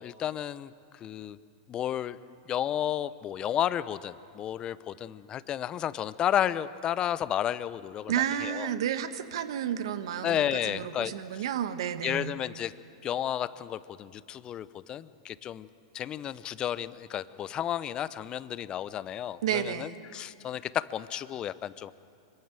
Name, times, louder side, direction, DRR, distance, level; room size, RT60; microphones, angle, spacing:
voice 1, 0.0-1.4 1.7-2.2 2.5-8.7 10.2-11.4 12.0-12.7 13.0-15.7 15.9-21.9, left 10 dB, 30° left, 16 dB, 0.7 m, -32 dB
voice 2, 8.1-12.3 19.4-20.0, right 10 dB, 70° right, 11 dB, 1.3 m, -31 dB
25.0 x 15.0 x 9.2 m, 2.5 s
hypercardioid pair, 115°, 3 cm